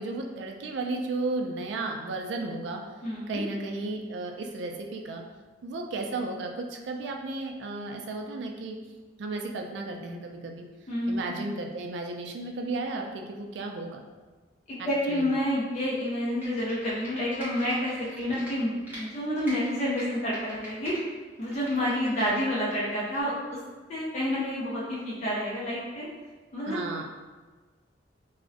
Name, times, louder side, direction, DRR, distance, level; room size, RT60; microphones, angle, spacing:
voice 1, 0.0-2.8 3.3-5.2 5.6-8.8 9.2-10.7 11.1-14.0 14.8-15.3 26.7-27.0, right 2 dB, 75° right, 2 dB, 0.3 m, -34 dB
voice 2, 3.0-3.4 10.9-11.3 14.7-21.0 21.4-23.6 23.9-26.1 26.5-26.8, equal, 40° left, -7 dB, 0.4 m, -29 dB
Computer keyboard, 16.3-19.0 19.4-21.0 21.4-22.8 23.1-23.2, right 1 dB, 10° right, 0.7 m, -43 dB
2.5 x 2.0 x 2.5 m, 1.3 s
head